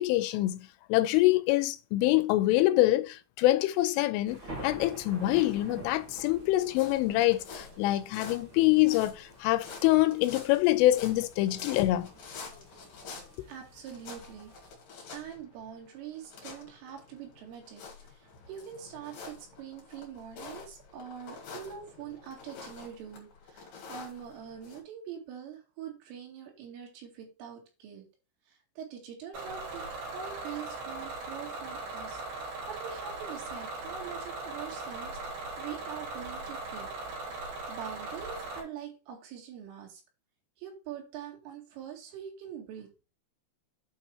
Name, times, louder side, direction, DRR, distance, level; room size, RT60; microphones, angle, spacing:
voice 1, 0.0-12.1 13.4-13.5, left 16 dB, 85° left, 3.2 m, -25 dB
sound 1, 4.3-14.7, right 1 dB, 30° right, 3.1 m, -49 dB
sound 2, 6.6-24.8, left 4 dB, 50° left, 3.5 m, -48 dB
voice 2, 13.5-14.5 15.1-28.1 28.5-36.9 37.7-40.0 40.6-42.9, right 8 dB, 85° right, 4.7 m, -44 dB
Bus / Engine, 29.3-38.6, right 2 dB, 60° right, 5.4 m, -39 dB
8.7 x 4.4 x 4.5 m
omnidirectional pair, 5.7 m